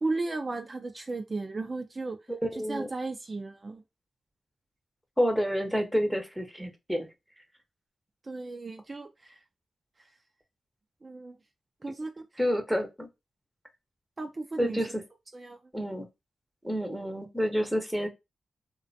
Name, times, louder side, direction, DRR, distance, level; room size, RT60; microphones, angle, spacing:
voice 1, 0.0-2.2 2.5-3.8 8.2-9.4 11.0-11.4 11.8-12.2 14.2-14.8 15.3-15.6, right 3 dB, 40° right, 0.4 m, -35 dB
voice 2, 2.3-2.9 5.2-7.1 12.4-13.1 14.6-15.0 15.7-16.1 16.6-18.1, equal, ahead, 0.7 m, -29 dB
2.4 x 2.2 x 2.6 m
supercardioid pair, 45°, 0 cm